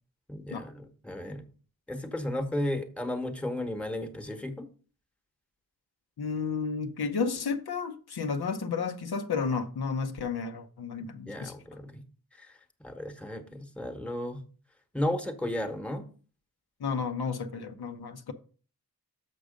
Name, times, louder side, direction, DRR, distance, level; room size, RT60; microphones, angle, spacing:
voice 1, 0.3-1.5 1.9-4.7 11.3-12.0 12.4-14.4 14.9-16.1, left 1 dB, 5° left, 1.1 m, -34 dB
voice 2, 6.2-11.5 16.8-18.3, left 5 dB, 85° left, 0.9 m, -32 dB
6.8 x 6.1 x 5.1 m
wide cardioid pair, 100°, 37 cm